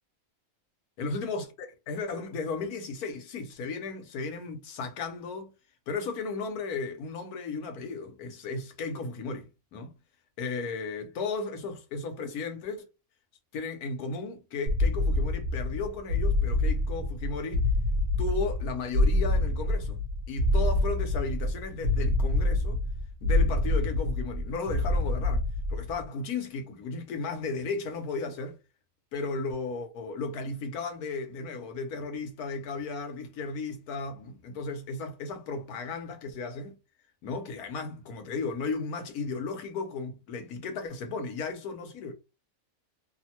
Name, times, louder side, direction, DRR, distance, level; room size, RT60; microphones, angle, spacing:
voice 1, 1.0-5.5 5.9-9.9 10.4-12.9 13.5-17.7 18.2-20.0 20.3-22.8 23.2-25.4 25.7-28.6 29.1-36.8 37.2-42.1, left 4 dB, 80° left, 1.3 m, -35 dB
sound 1, 14.7-26.0, left 1 dB, 55° right, 1.2 m, -26 dB
3.0 x 2.1 x 2.8 m
omnidirectional pair, 1.6 m